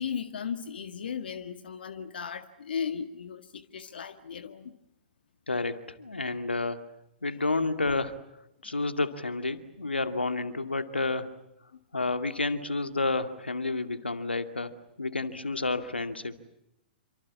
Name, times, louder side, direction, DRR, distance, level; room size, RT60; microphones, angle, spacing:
voice 1, 0.0-4.8, left 7 dB, 65° left, 1.8 m, -36 dB
voice 2, 5.5-6.8 7.2-8.2 8.6-11.3 11.9-16.4, left 3 dB, 85° left, 2.3 m, -30 dB
29.0 x 26.0 x 7.2 m
figure-of-eight pair, 110°, 6 cm